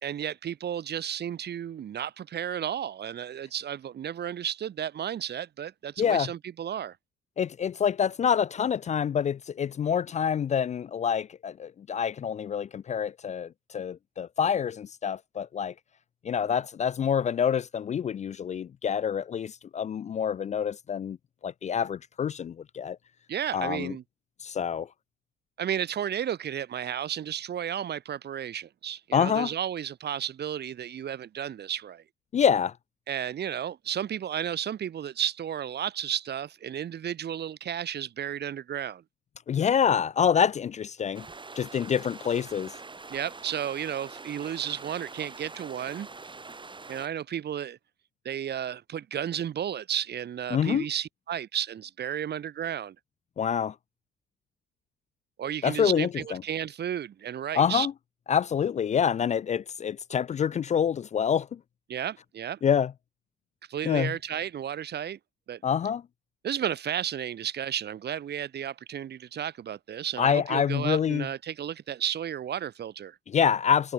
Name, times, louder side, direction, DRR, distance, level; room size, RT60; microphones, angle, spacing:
voice 1, 0.0-7.0 23.3-24.0 25.6-32.0 33.1-39.0 43.1-46.1 46.9-47.8 48.2-52.9 55.4-57.9 61.9-62.6 63.7-65.2 65.5-65.6 66.4-73.2, right 9 dB, 55° right, 1.4 m, -33 dB
voice 2, 6.0-6.3 7.4-15.7 16.2-21.2 21.4-23.0 23.5-23.9 24.4-24.9 29.1-29.5 32.3-32.7 39.5-41.3 41.6-42.7 50.5-50.9 53.4-53.7 55.6-56.4 57.5-57.9 58.3-61.6 62.6-62.9 63.8-64.1 65.6-66.0 70.2-71.3 73.3-73.9, left 7 dB, 35° left, 0.4 m, -26 dB
sound 1, 41.1-47.1, right 3 dB, 25° right, 4.1 m, -44 dB
cardioid pair, 90°, 20 cm